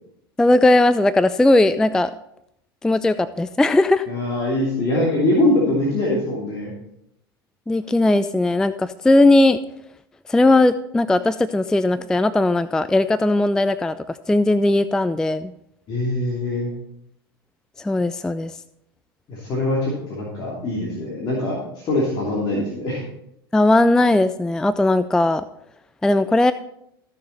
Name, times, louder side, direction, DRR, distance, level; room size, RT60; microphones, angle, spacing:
voice 1, 0.4-2.1 2.8-4.1 7.7-9.6 10.3-15.5 17.8-18.5 23.5-25.4 26.0-26.5, left 2 dB, 5° left, 13 dB, 0.3 m, -18 dB
voice 2, 4.1-6.7 15.9-16.7 19.3-23.0, left 1 dB, 35° left, -5 dB, 2.9 m, -23 dB
14.5 x 6.8 x 4.1 m, 0.76 s
figure-of-eight pair, 80°, 13 cm